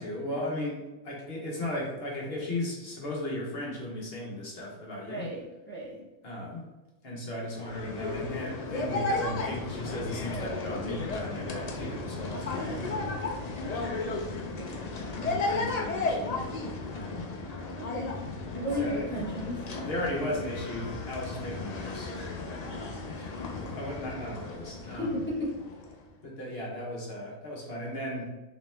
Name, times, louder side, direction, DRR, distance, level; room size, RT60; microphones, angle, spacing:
voice 1, 0.0-5.3 6.2-6.6 7.0-13.1 13.7-14.2 14.9-16.4 16.9-17.3 18.8-19.3 19.8-22.3 23.1-25.2 26.2-28.3, left 1 dB, 50° left, -3 dB, 1.1 m, -36 dB
voice 2, 5.1-6.0 14.5-14.9 17.7-18.1 18.5-19.6 22.6-23.0 25.0-25.5, equal, 10° left, -8 dB, 1.1 m, -34 dB
sound 1, 7.5-26.0, left 3 dB, 75° left, 0.3 m, -34 dB
3.5 x 2.9 x 3.3 m, 1.1 s
omnidirectional pair, 1.4 m